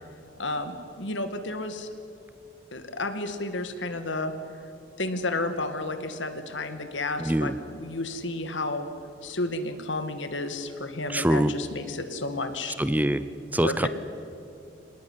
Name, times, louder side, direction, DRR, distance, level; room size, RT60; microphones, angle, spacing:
voice 1, 0.4-1.9 2.7-4.3 5.0-8.9 9.2-12.8 13.6-13.9, left 2 dB, 80° left, 8 dB, 2.2 m, -31 dB
voice 2, 7.2-7.5 11.1-11.5 12.8-13.2 13.5-13.9, right 1 dB, 10° right, 13 dB, 0.7 m, -23 dB
25.5 x 19.5 x 9.8 m, 2.5 s
head